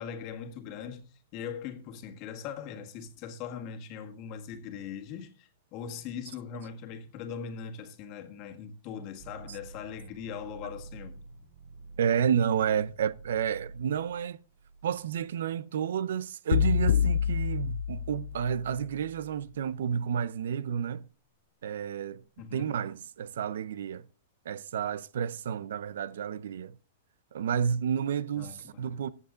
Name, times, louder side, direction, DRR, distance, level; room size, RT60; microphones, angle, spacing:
voice 1, 0.0-11.2 22.4-22.7 28.4-28.5, left 7 dB, 30° left, 1.7 m, -40 dB
sound 1, 9.2-15.2, right 3 dB, 40° right, 4.8 m, -48 dB
voice 2, 12.0-14.4 14.8-21.1 21.6-22.2 22.5-24.1 24.4-26.8 27.3-29.1, right 8 dB, 75° right, 0.7 m, -30 dB
sound 2, 16.5-18.7, left 8 dB, 75° left, 0.6 m, -27 dB
15.0 x 8.3 x 3.9 m
supercardioid pair, 170°, 0 cm